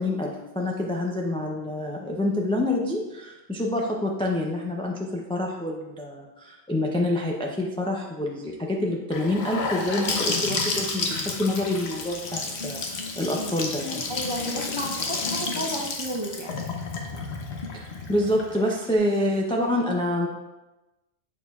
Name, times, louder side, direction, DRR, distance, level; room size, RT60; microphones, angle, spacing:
voice 1, 0.0-14.1 17.7-20.3, left 1 dB, 5° left, -1 dB, 0.5 m, -27 dB
Gurgling / Sink (filling or washing) / Bathtub (filling or washing), 9.1-18.9, left 4 dB, 85° left, 1.1 m, -31 dB
voice 2, 14.1-16.6, equal, 30° right, -2 dB, 0.8 m, -32 dB
7.3 x 6.5 x 2.3 m, 1.0 s
omnidirectional pair, 1.1 m